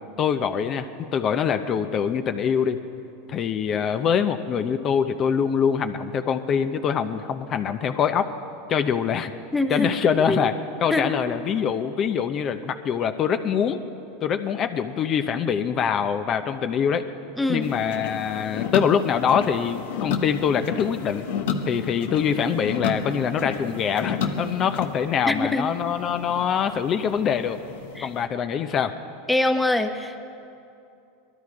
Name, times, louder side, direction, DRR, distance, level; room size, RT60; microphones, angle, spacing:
voice 1, 0.2-2.8 3.3-8.3 8.7-9.3 9.7-10.5 10.8-13.8 14.2-17.0 17.5-21.3 21.7-27.6 28.0-28.9, left 7 dB, 35° left, 8 dB, 0.7 m, -24 dB
voice 2, 9.5-9.9 10.3-10.4 10.9-11.1 17.4-17.7 25.3-25.7 28.0-28.1 29.3-30.2, left 2 dB, 5° left, 7 dB, 0.9 m, -23 dB
sound 1, 17.6-28.3, left 6 dB, 75° left, 1.0 m, -32 dB
19.5 x 12.5 x 4.8 m, 2.7 s
supercardioid pair, 115°, 0 cm